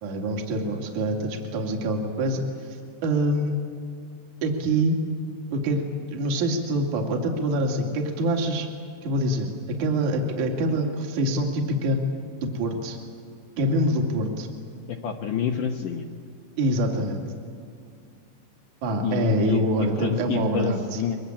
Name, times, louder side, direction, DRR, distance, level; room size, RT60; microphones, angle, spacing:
voice 1, 0.0-2.8 3.0-3.6 4.4-5.0 5.5-5.8 6.1-8.7 9.0-9.5 9.8-12.0 12.4-13.0 13.6-14.5 16.6-17.2 18.8-21.0, right 1 dB, 45° right, 2 dB, 3.3 m, -25 dB
voice 2, 14.9-16.1 19.0-21.2, left 8 dB, 75° left, 3 dB, 1.9 m, -28 dB
23.5 x 23.0 x 8.8 m, 2.3 s
omnidirectional pair, 5.2 m